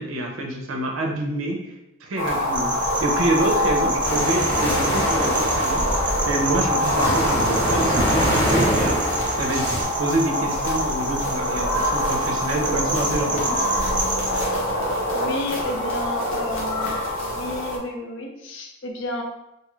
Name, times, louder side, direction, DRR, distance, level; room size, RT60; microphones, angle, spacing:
voice 1, 0.0-1.6 2.0-13.7, right 2 dB, 75° right, 1 dB, 0.5 m, -27 dB
sound 1, 2.2-17.8, left 1 dB, 85° left, 0.9 m, -25 dB
sound 2, 2.5-14.4, right 2 dB, 25° right, 0.3 m, -31 dB
sound 3, 4.0-9.8, equal, 15° left, 0.8 m, -24 dB
voice 2, 15.1-19.2, left 2 dB, 60° left, 2 dB, 0.5 m, -32 dB
2.7 x 2.3 x 3.0 m, 0.88 s
head